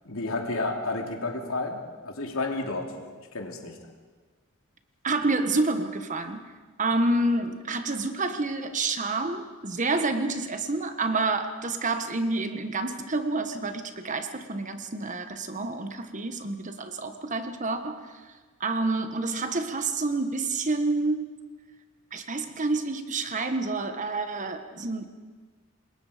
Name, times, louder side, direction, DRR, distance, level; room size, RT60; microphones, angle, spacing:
voice 1, 0.0-3.8, left 2 dB, 90° left, 2 dB, 3.0 m, -31 dB
voice 2, 5.0-6.4 6.8-18.1 18.6-21.3 22.1-25.1, right 3 dB, 35° right, 8 dB, 1.4 m, -28 dB
27.0 x 21.5 x 5.2 m, 1.4 s
head